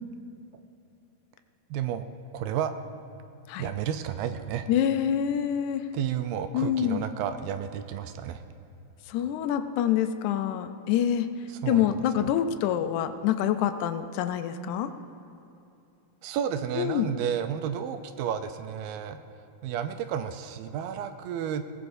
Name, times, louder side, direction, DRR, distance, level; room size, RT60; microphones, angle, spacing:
voice 1, 1.7-2.1 2.3-2.7 3.6-4.7 5.9-8.4 11.5-12.3 16.2-19.2 19.6-21.6, right 9 dB, 85° right, 8 dB, 2.3 m, -32 dB
voice 2, 4.7-5.8 6.5-7.0 9.1-11.3 11.7-14.9 16.8-17.1, left 10 dB, 85° left, 9 dB, 1.7 m, -26 dB
21.5 x 18.5 x 2.6 m, 2.7 s
omnidirectional pair, 4.1 m